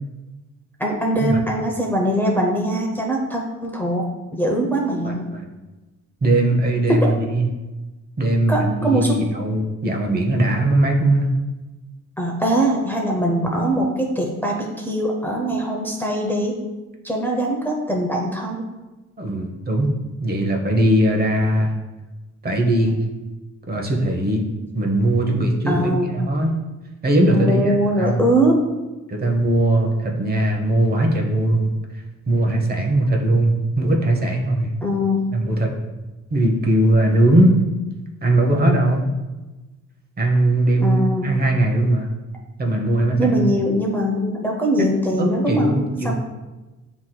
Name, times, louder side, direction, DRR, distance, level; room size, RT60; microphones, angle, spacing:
voice 1, 0.8-5.3 6.9-7.1 8.5-9.2 12.2-16.6 17.0-18.6 25.7-26.1 27.3-28.6 34.8-35.3 40.8-41.4 43.2-46.1, right 1 dB, 5° left, -2 dB, 0.6 m, -22 dB
voice 2, 5.0-5.4 6.2-7.5 8.2-11.3 19.2-19.9 20.2-21.7 22.4-23.0 23.7-24.4 24.7-26.5 27.0-28.2 29.1-31.7 32.3-34.7 35.3-35.7 36.3-37.6 38.2-39.1 40.2-42.1 42.6-43.4 45.2-46.1, right 1 dB, 30° right, 1 dB, 0.9 m, -19 dB
7.6 x 3.0 x 2.2 m, 1.1 s
cardioid pair, 90°, 30 cm